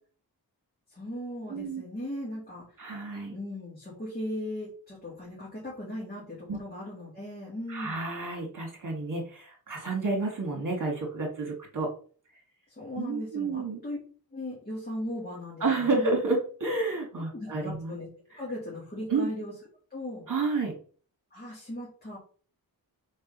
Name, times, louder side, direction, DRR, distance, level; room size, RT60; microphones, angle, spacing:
voice 1, 0.9-2.6 3.3-8.0 12.7-14.0 14.3-16.1 17.3-18.1 18.4-19.5 19.9-20.3 21.3-22.2, left 1 dB, 25° left, -6 dB, 2.7 m, -38 dB
voice 2, 1.5-1.8 2.8-3.3 6.5-6.6 7.7-11.9 13.0-13.8 15.6-17.9 19.1-19.3 20.3-20.7, right 3 dB, 55° right, 1 dB, 2.0 m, -30 dB
5.3 x 4.7 x 5.4 m, 0.42 s
wide cardioid pair, 135°, 38 cm